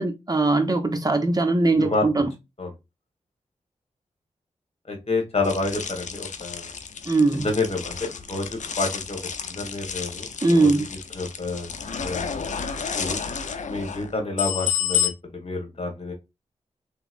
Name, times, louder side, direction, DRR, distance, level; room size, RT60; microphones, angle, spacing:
voice 1, 0.0-2.3 7.1-7.5 10.4-10.8, right 2 dB, 30° right, 1.0 m, -20 dB
voice 2, 4.9-6.7 7.4-9.2 9.5-10.3 10.6-12.4 12.9-13.2 13.6-16.1, left 3 dB, 50° left, 1.5 m, -29 dB
sound 1, 5.4-15.1, left 7 dB, 70° left, 0.5 m, -31 dB
3.5 x 3.0 x 2.5 m
cardioid pair, 45°, 13 cm